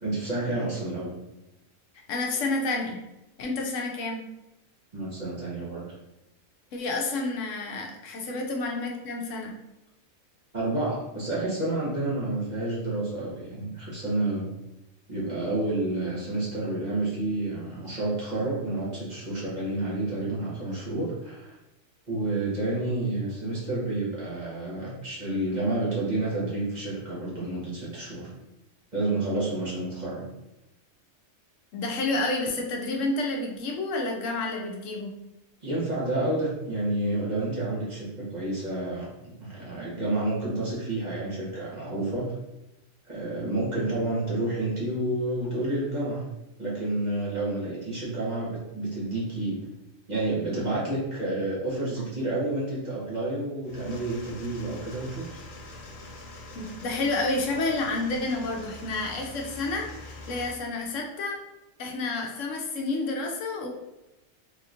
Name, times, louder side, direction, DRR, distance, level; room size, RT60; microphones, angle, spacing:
voice 1, 0.0-1.1 4.9-5.9 10.5-14.5 15.1-21.6 22.1-28.3 28.9-30.3 35.6-39.1 39.4-42.3 43.1-46.2 46.6-49.6 50.1-55.2, right 2 dB, 35° right, -7 dB, 1.1 m, -29 dB
voice 2, 2.1-3.0 3.4-4.3 6.7-9.6 31.7-35.1 56.5-61.4 61.8-63.7, left 2 dB, 75° left, 1 dB, 0.9 m, -30 dB
sound 1, 53.6-60.5, left 2 dB, 55° left, 0.5 m, -44 dB
3.4 x 2.9 x 2.4 m, 0.95 s
omnidirectional pair, 1.3 m